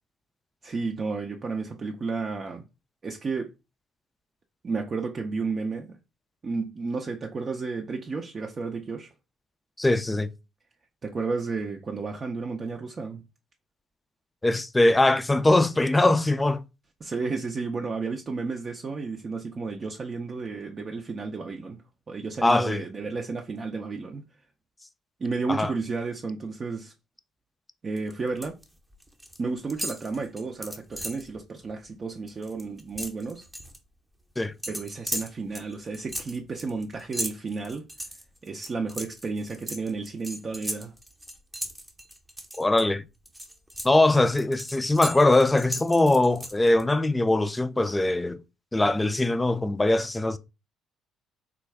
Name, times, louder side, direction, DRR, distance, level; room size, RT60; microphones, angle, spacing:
voice 1, 0.6-2.7 3.0-3.5 4.6-6.0 6.4-9.1 11.0-13.2 17.0-24.2 25.2-26.9 27.8-28.6 29.4-33.5 34.7-37.8 38.4-40.9, right 4 dB, 40° right, 0.5 m, -32 dB
voice 2, 9.8-10.3 14.4-16.6 22.4-22.8 25.5-25.7 34.4-34.5 42.6-43.0 43.8-48.4 48.7-50.4, left 2 dB, 15° left, 0.3 m, -21 dB
sound 1, 28.0-28.6 28.9-29.4 29.7-31.3 31.7-31.9 32.2-33.8 34.6-42.8 43.2-46.8, equal, 5° right, 0.7 m, -37 dB
3.4 x 2.3 x 3.3 m
hypercardioid pair, 55°, 0 cm